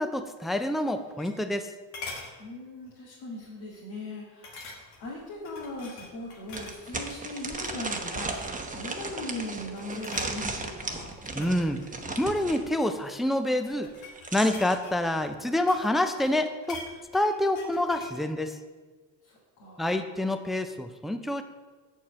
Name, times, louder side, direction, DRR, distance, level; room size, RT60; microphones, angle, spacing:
voice 1, 0.0-1.7 11.3-11.8 12.2-13.9 14.3-16.9 17.1-18.6 19.8-21.4, left 1 dB, ahead, 8 dB, 0.4 m, -27 dB
sound 1, 0.8-1.6 1.9-2.3 2.9-3.1 3.4-3.5 4.4-5.1 5.4-7.1 7.5-7.8 8.2-8.7 9.2-9.5 9.8-10.3 11.1-12.7 13.5-15.9 16.2-18.2 18.5-18.6, left 3 dB, 80° left, 1.6 m, -45 dB
voice 2, 2.4-11.1 19.2-19.9, left 2 dB, 60° left, -6 dB, 2.0 m, -39 dB
sound 2, 5.1-5.2 5.6-5.7 6.5-12.6 13.9-14.8, right 3 dB, 15° right, 0.9 m, -35 dB
7.3 x 4.4 x 6.1 m, 1.4 s
supercardioid pair, 70°, 47 cm